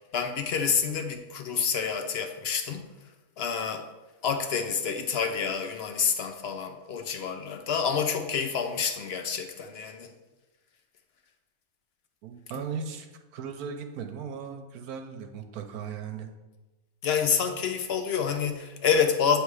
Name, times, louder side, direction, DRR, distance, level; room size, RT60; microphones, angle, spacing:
voice 1, 0.1-2.9 3.4-3.9 4.2-10.1 17.0-19.4, left 6 dB, 65° left, 6 dB, 0.6 m, -28 dB
voice 2, 12.2-13.1 13.3-16.3, right 6 dB, 85° right, 6 dB, 1.2 m, -37 dB
8.1 x 3.3 x 4.8 m, 1.1 s
omnidirectional pair, 1.6 m